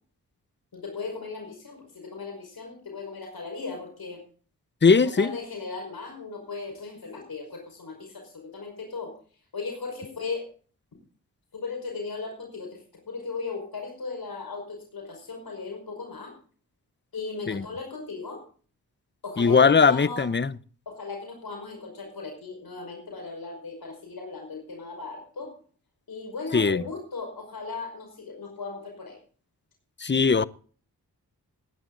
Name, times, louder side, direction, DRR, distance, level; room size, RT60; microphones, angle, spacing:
voice 1, 0.7-4.2 5.0-9.1 9.5-10.5 11.5-16.3 17.1-18.4 19.2-20.3 20.8-25.6 26.1-29.2, left 4 dB, 70° left, 5.3 m, -37 dB
voice 2, 4.8-5.3 17.5-17.6 19.4-20.5 26.5-26.8 30.0-30.4, left 5 dB, 30° left, 0.8 m, -19 dB
19.0 x 10.0 x 3.9 m
cardioid pair, 45°, 38 cm